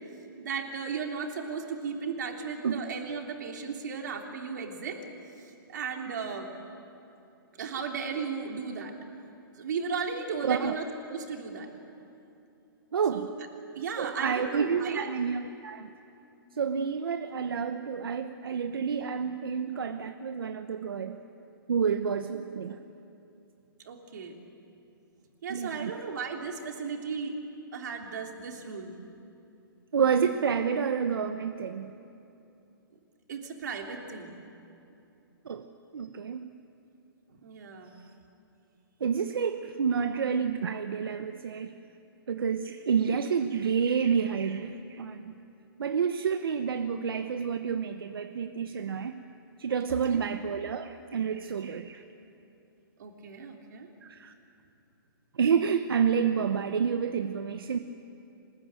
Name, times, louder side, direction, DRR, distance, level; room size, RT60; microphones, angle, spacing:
voice 1, 0.4-5.0 5.7-6.5 7.6-8.9 9.5-11.7 13.1-13.3 13.7-15.1 23.8-24.4 25.4-27.3 27.7-29.0 33.3-34.4 37.4-37.9 49.9-50.2 53.0-53.9, right 5 dB, 50° right, 2 dB, 3.3 m, -35 dB
voice 2, 10.4-10.8 12.9-13.3 14.0-15.9 16.6-21.2 21.7-22.8 25.5-25.9 29.9-31.9 35.4-35.7 35.9-36.5 39.0-41.7 42.3-45.3 45.8-49.2 49.6-52.0 54.0-54.3 55.4-57.8, right 6 dB, 80° right, 8 dB, 1.1 m, -29 dB
24.5 x 20.5 x 9.0 m, 2.8 s
hypercardioid pair, 170°, 12 cm